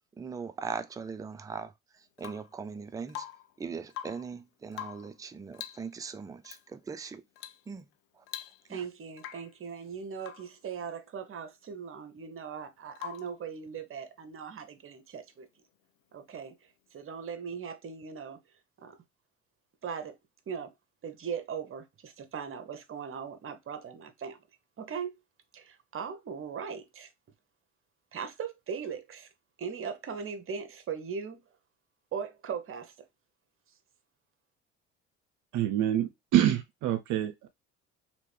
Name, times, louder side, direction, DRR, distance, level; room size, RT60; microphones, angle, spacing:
voice 1, 0.1-3.3 3.6-7.2 7.7-7.9 8.1-8.2 8.7-8.9, right 5 dB, 10° right, 0.4 m, -40 dB
Rain / Water tap faucet / Drip, 2.2-2.6 3.1-3.6 3.9-4.3 4.7-5.2 5.5-5.9 6.4-6.6 7.4-7.7 7.9-8.0 8.3-8.8 9.2-9.6 10.2-10.5 13.0-13.4 15.3-15.4, left 11 dB, 80° left, 0.6 m, -43 dB
voice 2, 8.7-15.5 16.1-16.5 16.9-18.4 18.8-19.0 19.8-20.2 20.5-20.7 21.0-24.4 24.8-25.2 25.5-27.1 28.1-29.3 29.6-31.4 32.1-32.9, right 6 dB, 35° right, 0.9 m, -39 dB
voice 3, 35.5-37.5, right 11 dB, 55° right, 0.6 m, -26 dB
3.0 x 2.9 x 3.3 m
hypercardioid pair, 60°, 36 cm